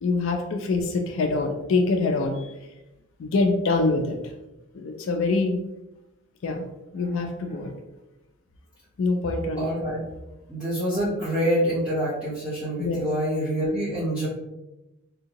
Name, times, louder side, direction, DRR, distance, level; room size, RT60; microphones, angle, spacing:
voice 1, 0.0-2.5 3.2-4.3 4.7-5.6 6.4-7.7 9.0-9.7 12.8-13.0, left 3 dB, 65° left, 4 dB, 0.4 m, -25 dB
voice 2, 9.6-10.0 10.5-14.3, equal, 5° right, -14 dB, 1.1 m, -26 dB
3.4 x 2.7 x 2.8 m, 0.96 s
head